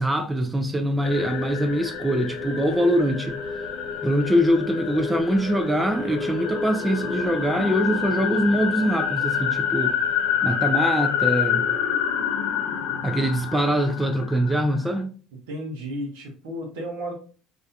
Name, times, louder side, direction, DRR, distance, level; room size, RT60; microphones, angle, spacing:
voice 1, 0.0-3.4 4.0-10.0 10.4-11.7 13.0-15.2, equal, 10° right, 0.3 m, -23 dB
sound 1, 1.0-15.0, left 7 dB, 70° left, 0.5 m, -27 dB
voice 2, 15.5-17.1, equal, 85° right, 0.8 m, -33 dB
2.4 x 2.2 x 2.5 m
supercardioid pair, 85°, 0 cm